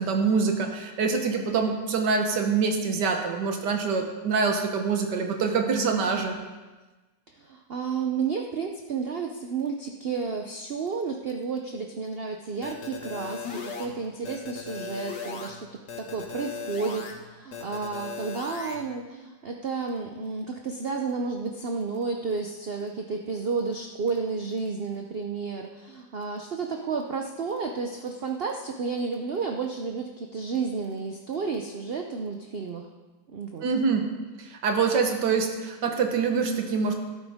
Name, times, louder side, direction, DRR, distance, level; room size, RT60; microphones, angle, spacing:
voice 1, 0.0-6.3 33.6-34.1 34.4-36.9, right 5 dB, 80° right, 4 dB, 1.8 m, -25 dB
voice 2, 7.4-15.7 16.0-32.9 33.3-33.6, right 5 dB, 55° right, 3 dB, 0.7 m, -31 dB
sound 1, 12.6-13.9 14.2-15.5 15.9-17.1 17.5-18.8, left 5 dB, 85° left, 2.0 m, -37 dB
13.0 x 11.5 x 3.5 m, 1.2 s
omnidirectional pair, 1.8 m